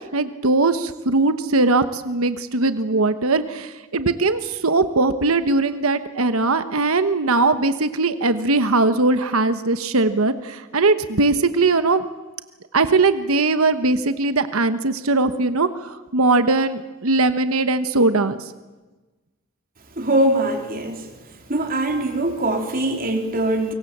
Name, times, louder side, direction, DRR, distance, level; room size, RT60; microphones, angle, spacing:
voice 1, 0.1-12.0 12.7-18.4, right 3 dB, 80° right, 11 dB, 1.2 m, -20 dB
voice 2, 20.0-21.1 21.5-23.7, right 1 dB, 40° right, 4 dB, 3.5 m, -22 dB
25.5 x 23.5 x 7.4 m, 1.2 s
head